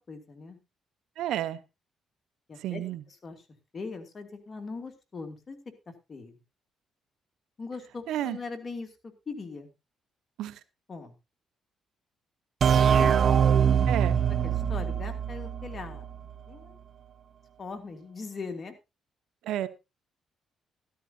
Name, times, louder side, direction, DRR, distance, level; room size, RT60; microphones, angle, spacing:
voice 1, 0.1-0.6 2.5-3.5 3.7-5.6 6.1-6.4 7.6-8.9 9.3-9.7 10.9-11.1 12.9-13.1 14.3-16.1 16.5-16.8 17.6-18.7, left 4 dB, 35° left, 5 dB, 2.6 m, -40 dB
voice 2, 1.2-1.6 2.6-3.0 8.1-8.4 10.4-10.6 13.9-14.2 19.4-19.7, right 12 dB, 85° right, 14 dB, 0.8 m, -31 dB
sound 1, 12.6-16.2, right 8 dB, 55° right, 0.8 m, -23 dB
13.0 x 13.0 x 2.7 m, 0.25 s
cardioid pair, 90°, 0 cm